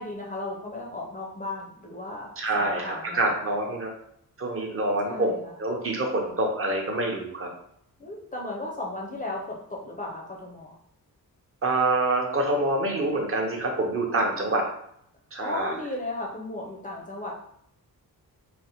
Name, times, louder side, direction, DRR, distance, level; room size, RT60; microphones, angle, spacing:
voice 1, 0.0-2.3 2.5-3.4 5.1-5.6 8.0-10.8 14.1-14.7 15.4-17.4, left 2 dB, 25° left, -2 dB, 0.4 m, -35 dB
voice 2, 2.4-3.9 4.4-5.3 5.6-7.5 11.6-14.6 15.3-15.7, right 2 dB, 40° right, 0 dB, 0.6 m, -26 dB
4.0 x 2.0 x 2.7 m, 0.70 s
wide cardioid pair, 170°, 37 cm